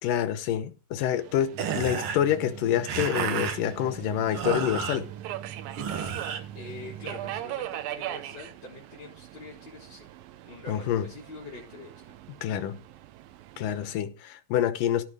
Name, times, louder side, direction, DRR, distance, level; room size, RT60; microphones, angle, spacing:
voice 1, 0.0-5.1 10.7-11.1 12.4-12.8 13.6-15.0, left 10 dB, 75° left, 2.6 m, -27 dB
Subway metro underground, 1.1-13.9, right 13 dB, 90° right, 2.6 m, -42 dB
sound 1, 1.5-7.4, right 7 dB, 60° right, 1.4 m, -33 dB
voice 2, 6.5-10.1 10.4-12.2, left 3 dB, 30° left, 4.5 m, -45 dB
16.5 x 6.0 x 5.0 m
omnidirectional pair, 4.1 m